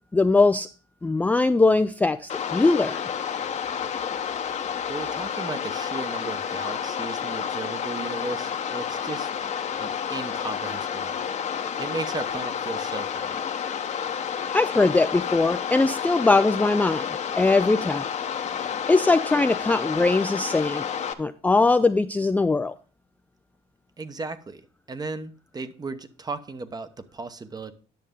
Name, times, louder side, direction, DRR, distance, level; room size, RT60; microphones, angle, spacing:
voice 1, 0.1-0.7 1.0-3.0 14.5-18.1 18.9-20.9 21.2-22.7, left 3 dB, 10° left, 0.3 m, -21 dB
sound 1, 2.3-21.1, left 7 dB, 40° left, 0.9 m, -30 dB
voice 2, 4.9-9.3 9.8-11.3 11.8-13.4 24.0-24.6 24.9-27.7, right 3 dB, 25° right, 0.9 m, -35 dB
10.5 x 6.6 x 3.6 m
cardioid pair, 110°, 17 cm